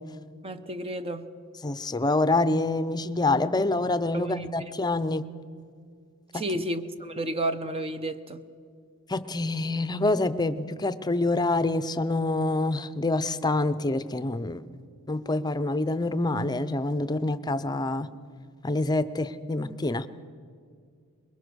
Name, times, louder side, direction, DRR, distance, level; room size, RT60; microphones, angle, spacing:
voice 1, 0.4-1.3 4.1-4.7 6.3-8.4, right 1 dB, 25° right, 0.8 m, -32 dB
voice 2, 1.6-5.3 6.3-6.5 9.1-14.6 15.1-18.1 18.6-20.1, left 2 dB, 20° left, 0.7 m, -26 dB
23.5 x 21.5 x 6.3 m
head